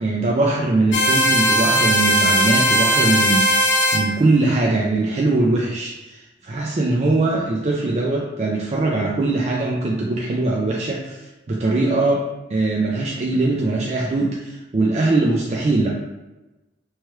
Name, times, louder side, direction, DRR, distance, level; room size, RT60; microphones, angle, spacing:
voice 1, 0.0-11.2 11.5-15.9, right 2 dB, 35° right, -3 dB, 0.3 m, -21 dB
sound 1, 0.9-4.0, equal, 80° left, 0.4 m, -18 dB
3.1 x 2.2 x 3.0 m, 1.0 s
head